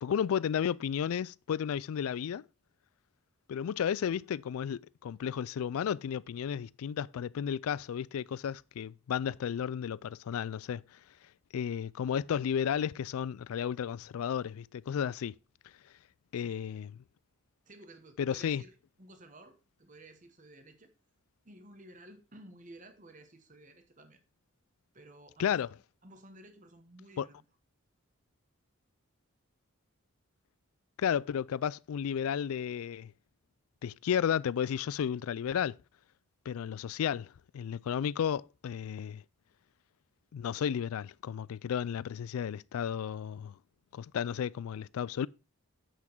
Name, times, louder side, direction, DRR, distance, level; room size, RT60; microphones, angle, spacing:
voice 1, 0.0-2.4 3.5-10.8 11.5-15.3 16.3-16.9 18.2-18.6 25.4-25.7 27.2-27.3 31.0-33.1 33.8-35.8 36.5-39.2 40.3-43.5 43.9-45.3, left 8 dB, 75° left, 0.3 m, -33 dB
voice 2, 17.7-20.9 21.4-24.2 24.9-25.6 26.0-27.4, right 1 dB, 35° right, 1.1 m, -54 dB
8.2 x 6.0 x 4.3 m
head